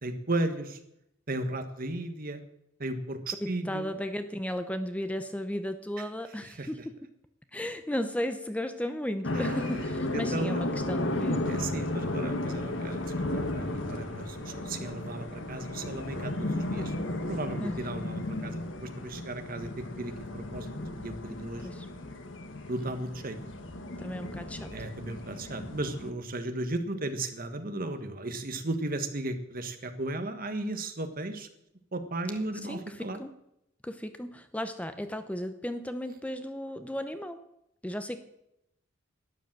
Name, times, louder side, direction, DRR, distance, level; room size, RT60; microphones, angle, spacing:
voice 1, 0.0-0.8 1.3-2.4 2.8-3.9 6.5-6.7 9.3-9.5 10.1-10.6 11.5-16.9 17.3-20.7 21.0-21.7 22.7-23.4 24.7-31.5 31.9-33.2, right 2 dB, 45° right, 8 dB, 1.5 m, -35 dB
voice 2, 3.4-6.8 7.5-11.4 17.6-17.8 21.6-21.9 24.0-24.7 32.6-33.3 33.8-37.4 37.8-38.3, equal, 5° left, 9 dB, 0.7 m, -35 dB
sound 1, 9.2-26.1, left 1 dB, 70° left, 1.6 m, -34 dB
12.5 x 10.5 x 7.5 m, 0.81 s
head